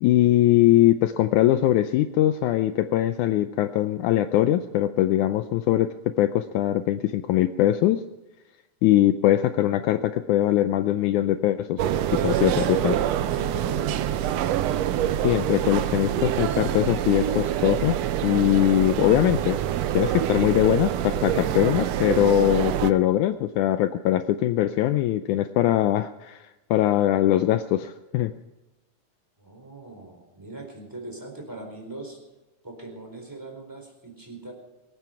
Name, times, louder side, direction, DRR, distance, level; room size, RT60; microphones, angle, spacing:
voice 1, 0.0-8.0 8.8-11.8 12.2-13.0 15.2-18.0 18.2-19.6 19.9-28.3, left 13 dB, 80° left, 9 dB, 2.0 m, -21 dB
sound 1, 11.8-22.9, right 11 dB, 75° right, 1.5 m, -26 dB
voice 2, 12.1-14.6 21.3-21.6 29.4-32.2 32.6-34.5, right 2 dB, 5° right, 2 dB, 4.1 m, -40 dB
23.5 x 9.2 x 5.8 m, 1.1 s
omnidirectional pair, 3.7 m